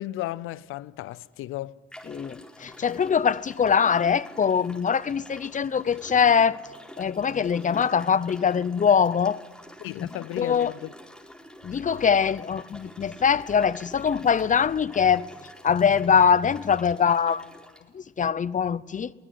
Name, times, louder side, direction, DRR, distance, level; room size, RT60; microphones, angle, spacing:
voice 1, 0.0-1.8 9.8-10.9, left 15 dB, 80° left, 0.7 m, -34 dB
sound 1, 1.1-1.2 1.9-17.8, equal, 5° left, 4.7 m, -47 dB
voice 2, 2.1-6.6 7.0-9.4 10.0-10.1 10.4-10.7 11.6-15.3 15.6-17.4 17.9-19.1, left 7 dB, 35° left, 0.7 m, -23 dB
23.0 x 18.0 x 9.6 m
cardioid pair, 80°, 21 cm